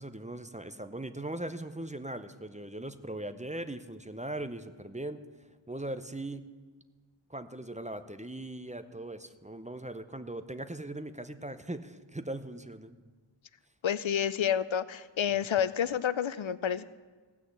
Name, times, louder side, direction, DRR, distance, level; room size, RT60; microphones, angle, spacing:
voice 1, 0.0-5.2 5.7-6.4 7.3-13.0 15.3-15.4, right 1 dB, 15° right, 10 dB, 0.7 m, -39 dB
voice 2, 13.8-16.8, left 9 dB, 70° left, 16 dB, 0.5 m, -29 dB
16.0 x 6.3 x 8.0 m, 1.4 s
wide cardioid pair, 45°, 48 cm